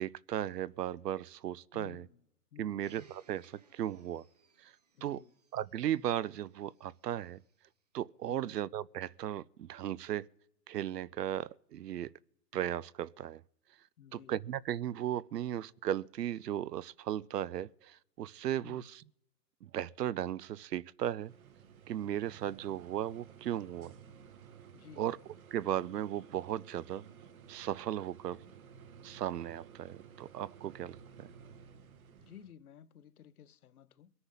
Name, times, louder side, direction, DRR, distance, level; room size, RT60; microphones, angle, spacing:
voice 1, 0.0-2.1 2.6-4.2 4.6-4.7 5.0-5.2 5.5-7.4 7.9-10.3 10.7-12.1 12.5-13.4 14.1-19.0 19.6-21.3 21.9-23.9 25.0-25.2 25.5-27.0 27.5-28.4 29.0-31.3, right 11 dB, 75° right, 0.6 m, -36 dB
voice 2, 1.7-2.2 2.5-2.8 4.9-5.3 8.3-8.5 14.0-14.4 18.6-18.9 24.7-25.1 32.1-34.1, left 9 dB, 60° left, 0.9 m, -54 dB
Domestic sounds home sounds, 2.8-7.7 8.4-8.5, right 6 dB, 25° right, 0.5 m, -66 dB
sound 1, 21.2-32.5, right 7 dB, 55° right, 1.4 m, -55 dB
22.0 x 9.7 x 5.7 m
hypercardioid pair, 150°, 49 cm